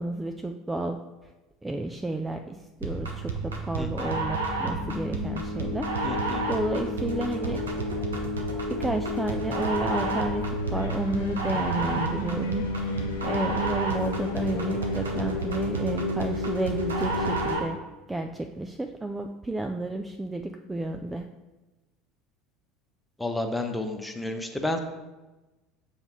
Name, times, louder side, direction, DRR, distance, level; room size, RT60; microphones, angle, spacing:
voice 1, 0.0-1.3 1.6-7.6 8.7-17.8 18.1-21.3, right 2 dB, 10° right, 5 dB, 0.4 m, -32 dB
sound 1, 2.8-17.8, right 1 dB, 80° right, 0.9 m, -29 dB
voice 2, 3.8-4.1 6.0-6.4 23.2-24.8, left 1 dB, 5° left, 5 dB, 0.8 m, -31 dB
sound 2, 9.9-15.7, left 4 dB, 80° left, 0.9 m, -42 dB
7.1 x 3.4 x 4.0 m, 1.1 s
hypercardioid pair, 70°, 0 cm